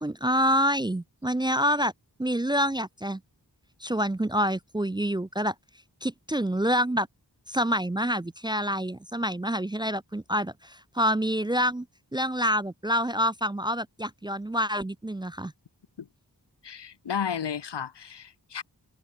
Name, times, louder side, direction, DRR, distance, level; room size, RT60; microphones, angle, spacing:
voice 1, 0.0-1.9 2.2-3.2 3.8-5.5 6.0-7.1 7.5-11.9 12.1-15.5, equal, 10° right, 0.4 m, -27 dB
voice 2, 16.6-18.6, left 7 dB, 85° left, 0.9 m, -33 dB
wide cardioid pair, 45°, 40 cm